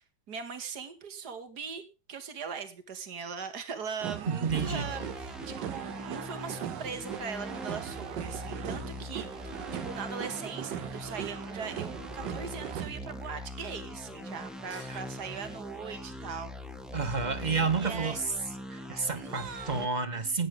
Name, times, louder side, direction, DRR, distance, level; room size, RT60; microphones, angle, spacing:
voice 1, 0.0-1.8 2.1-16.5 17.7-18.2 19.1-20.4, right 6 dB, 60° right, 2.5 m, -40 dB
sound 1, 4.0-12.9, right 10 dB, 80° right, 1.5 m, -39 dB
voice 2, 4.3-4.9 14.7-15.0 16.9-18.2 18.7-20.5, right 4 dB, 25° right, 1.5 m, -30 dB
sound 2, 4.5-19.9, left 1 dB, ahead, 1.1 m, -42 dB
17.5 x 9.3 x 3.7 m
omnidirectional pair, 1.9 m